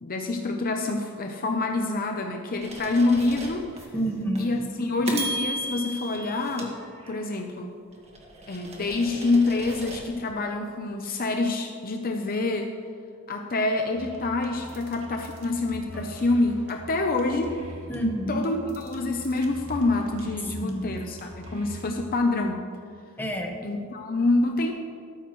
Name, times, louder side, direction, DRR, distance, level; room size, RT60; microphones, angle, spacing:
voice 1, 0.0-3.7 4.4-6.7 7.1-7.7 8.5-12.7 13.3-17.6 18.3-22.7 23.6-24.7, left 2 dB, 45° left, 3 dB, 0.8 m, -26 dB
sound 1, 2.6-3.9 4.4-4.5 5.1-7.4 7.9-10.1, right 1 dB, 30° right, 1.8 m, -36 dB
voice 2, 3.9-4.6 17.9-18.4 20.6-21.0 23.2-23.5, right 1 dB, 10° left, 1 dB, 1.3 m, -28 dB
sound 2, 13.9-21.9, equal, 85° right, 1.7 m, -42 dB
13.5 x 13.0 x 3.2 m, 2.2 s
head